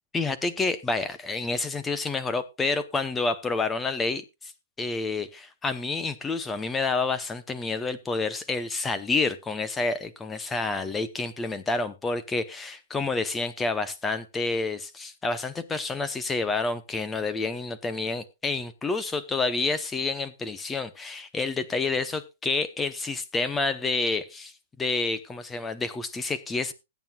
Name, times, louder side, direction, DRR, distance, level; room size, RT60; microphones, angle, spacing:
voice 1, 0.1-4.5 4.8-24.5 24.8-26.7, left 3 dB, 10° left, 13 dB, 0.7 m, -29 dB
20.0 x 9.1 x 2.3 m, 0.26 s
hypercardioid pair, 175°, 0 cm